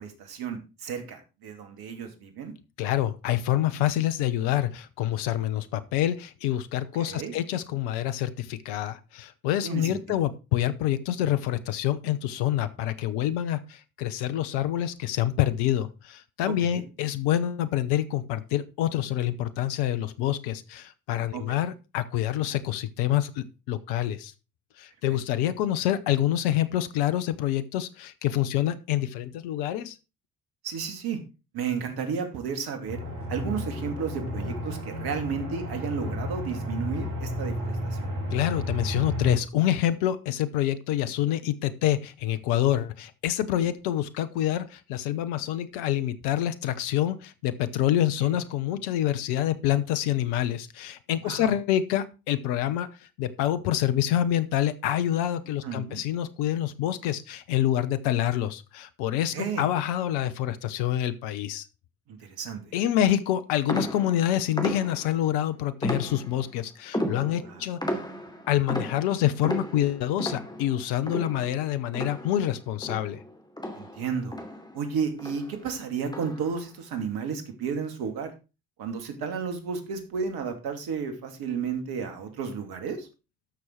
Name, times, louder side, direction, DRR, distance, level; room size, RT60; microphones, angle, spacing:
voice 1, 0.0-2.5 6.9-7.4 9.6-10.2 16.6-16.8 21.3-21.6 25.1-25.2 30.6-31.2 31.5-33.0 33.3-38.1 48.2-48.4 51.2-51.5 55.6-56.0 59.3-59.7 62.1-62.7 67.4-67.6 73.7-74.4 74.7-78.3 78.8-83.1, right 6 dB, 60° right, 6 dB, 2.8 m, -33 dB
voice 2, 2.8-24.3 24.8-29.9 38.3-52.9 53.2-61.6 62.7-67.8 68.5-73.2, left 12 dB, 70° left, 12 dB, 1.0 m, -27 dB
Aircraft, 32.9-39.4, equal, 85° right, 2.9 m, -32 dB
sound 1, 63.7-65.3 65.8-66.5 66.9-72.6 72.8-74.9 75.2-75.6 76.1-76.6, equal, 10° left, 2.9 m, -34 dB
13.0 x 6.3 x 4.7 m, 0.30 s
hypercardioid pair, 50°, 41 cm